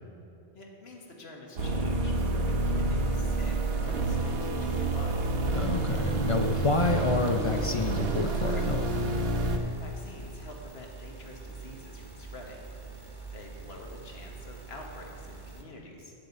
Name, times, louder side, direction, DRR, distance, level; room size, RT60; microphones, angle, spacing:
voice 1, 0.5-5.3 9.5-12.6 13.3-16.1, left 2 dB, 80° left, 0 dB, 1.5 m, -47 dB
sound 1, 1.6-9.6, right 2 dB, 75° right, 1.1 m, -28 dB
sound 2, 3.3-15.6, right 4 dB, 25° right, 1.0 m, -45 dB
voice 2, 5.5-9.1, left 3 dB, 45° left, 5 dB, 0.4 m, -29 dB
11.0 x 5.4 x 8.0 m, 2.6 s
omnidirectional pair, 1.0 m